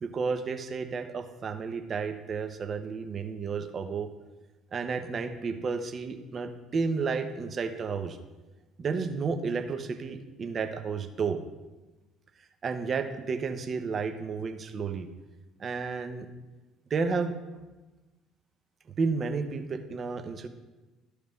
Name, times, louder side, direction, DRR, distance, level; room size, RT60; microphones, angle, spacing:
voice 1, 0.0-4.1 4.7-8.2 8.8-11.4 12.6-15.1 15.6-16.3 16.9-17.3 19.0-20.5, right 5 dB, 40° right, 7 dB, 0.9 m, -32 dB
13.5 x 5.0 x 3.3 m, 1.1 s
hypercardioid pair, 55°, 0 cm